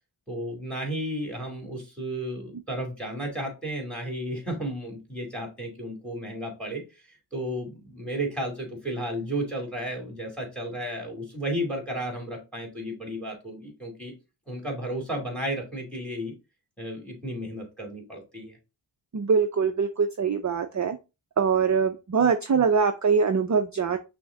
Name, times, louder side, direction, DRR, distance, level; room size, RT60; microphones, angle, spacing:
voice 1, 0.3-6.8 7.3-14.1 14.5-16.3 16.8-18.6, right 1 dB, ahead, 1 dB, 2.3 m, -33 dB
voice 2, 19.1-21.0 21.4-24.0, right 5 dB, 40° right, 7 dB, 0.5 m, -23 dB
6.0 x 2.1 x 3.8 m, 0.27 s
wide cardioid pair, 50°, 48 cm